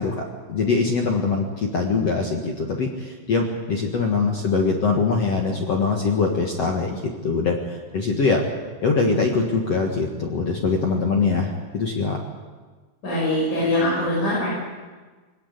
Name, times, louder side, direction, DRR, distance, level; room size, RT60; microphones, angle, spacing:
voice 1, 0.0-8.4 8.8-12.2, left 4 dB, 65° left, 1 dB, 1.5 m, -23 dB
voice 2, 13.0-14.5, left 1 dB, 40° left, -7 dB, 8.7 m, -22 dB
21.5 x 19.5 x 8.4 m, 1.4 s
omnidirectional pair, 5.9 m